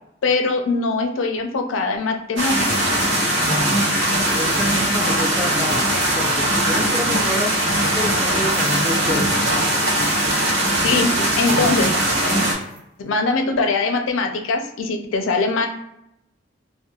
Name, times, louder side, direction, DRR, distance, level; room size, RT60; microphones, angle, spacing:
voice 1, 0.2-3.0 10.6-11.1 11.4-11.9 13.0-15.7, left 3 dB, 80° left, 4 dB, 0.4 m, -22 dB
sound 1, 1.8-1.9 2.6-3.5 3.8-3.9 4.3-4.8 5.2-5.3 5.7-6.3 6.6-6.7 6.9-7.6 8.5-9.3 10.0-10.6 11.5-12.0 12.4-12.8, right 2 dB, 35° right, 0.9 m, -40 dB
sound 2, 2.4-12.5, right 1 dB, 75° right, 1.0 m, -20 dB
voice 2, 3.4-3.9 4.3-9.4, left 1 dB, 5° right, 0 dB, 0.4 m, -28 dB
2.8 x 2.1 x 2.3 m, 0.82 s
head